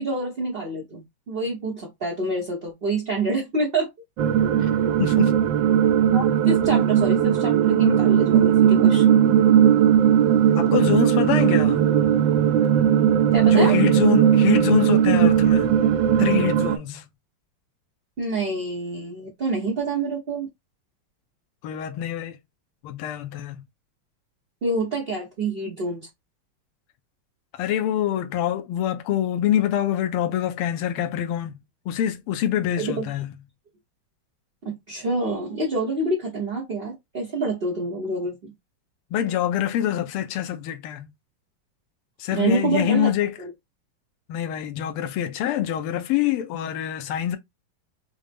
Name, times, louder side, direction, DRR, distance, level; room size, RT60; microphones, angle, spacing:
voice 1, 0.0-3.9 6.1-9.2 13.3-13.8 18.2-20.5 24.6-26.1 32.8-33.1 34.6-38.5 42.3-43.1 43.4-43.5, right 2 dB, 50° right, 0.7 m, -27 dB
sound 1, 4.2-16.8, right 9 dB, 75° right, 1.0 m, -18 dB
voice 2, 5.0-5.3 10.6-11.9 13.5-15.8 16.2-17.0 21.6-22.4 22.8-23.6 27.5-31.6 31.9-33.3 39.1-41.1 42.2-43.3 44.3-47.4, left 11 dB, 80° left, 1.6 m, -25 dB
5.4 x 2.0 x 3.3 m
omnidirectional pair, 2.4 m